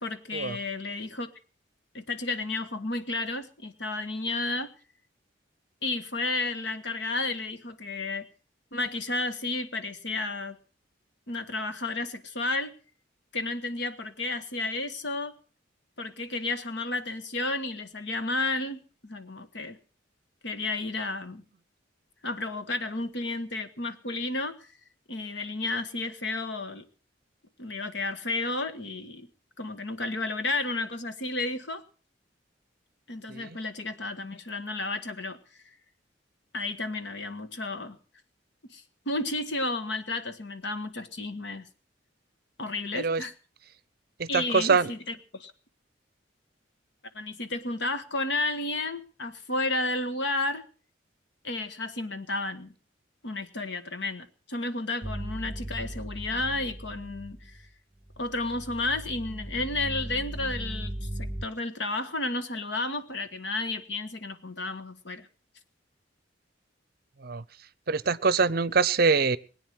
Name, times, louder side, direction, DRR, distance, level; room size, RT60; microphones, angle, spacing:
voice 1, 0.0-1.3 1.9-4.7 5.8-8.3 8.7-10.6 11.3-12.7 13.3-15.3 16.0-19.8 20.4-21.4 22.2-24.7 25.1-26.8 27.6-29.3 29.6-31.8 33.1-35.4 36.5-38.0 38.7-41.7 42.6-43.3 44.3-45.5 47.1-50.6 51.4-52.7 53.2-57.6 58.2-65.3, left 2 dB, 65° left, 9 dB, 1.5 m, -32 dB
voice 2, 44.2-44.9 67.2-67.4 67.9-69.4, right 4 dB, 50° right, 18 dB, 0.7 m, -24 dB
sound 1, 55.0-57.7 58.0-61.5, right 1 dB, 15° right, 1.0 m, -37 dB
21.0 x 9.3 x 6.2 m, 0.40 s
head